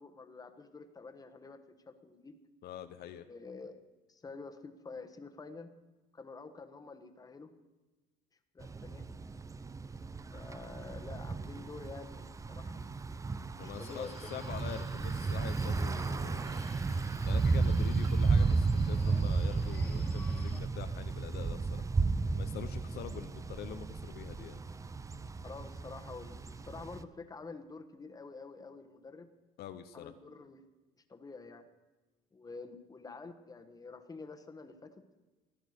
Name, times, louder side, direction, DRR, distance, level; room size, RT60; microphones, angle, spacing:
voice 1, 0.0-1.6 1.9-2.4 3.3-3.8 4.1-5.7 6.1-7.5 8.5-9.1 10.3-12.8 13.5-14.1 22.8-23.2 25.4-29.3 29.9-30.6 31.1-31.7 32.3-34.9, left 4 dB, 20° left, 7 dB, 1.3 m, -48 dB
voice 2, 2.6-3.3 13.6-16.6 17.2-21.8 22.3-24.6 29.6-30.1, left 10 dB, 70° left, 9 dB, 0.8 m, -45 dB
Thunder / Bicycle, 8.6-27.0, right 4 dB, 20° right, 0.5 m, -33 dB
Subway metro underground, 13.7-20.6, left 2 dB, 5° left, 1.8 m, -53 dB
15.0 x 10.5 x 6.6 m, 1.2 s
cardioid pair, 110°, 17 cm